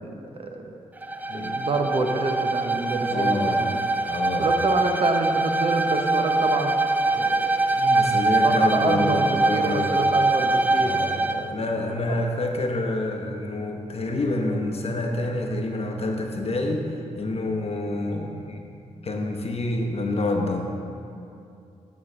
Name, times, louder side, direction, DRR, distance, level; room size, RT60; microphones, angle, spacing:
voice 1, 0.0-0.8 1.3-3.8 4.4-6.8 7.1-7.7 8.1-11.5 12.1-12.2, right 2 dB, 45° right, 3 dB, 0.8 m, -28 dB
Bowed string instrument, 1.0-11.5, right 2 dB, 10° right, 0.3 m, -23 dB
voice 2, 3.1-3.6 4.1-4.5 7.7-10.1 10.8-11.2 11.5-16.8 17.1-18.6 19.0-20.6, left 2 dB, 50° left, 2 dB, 0.9 m, -27 dB
9.3 x 3.1 x 6.1 m, 2.6 s
supercardioid pair, 50°, 14 cm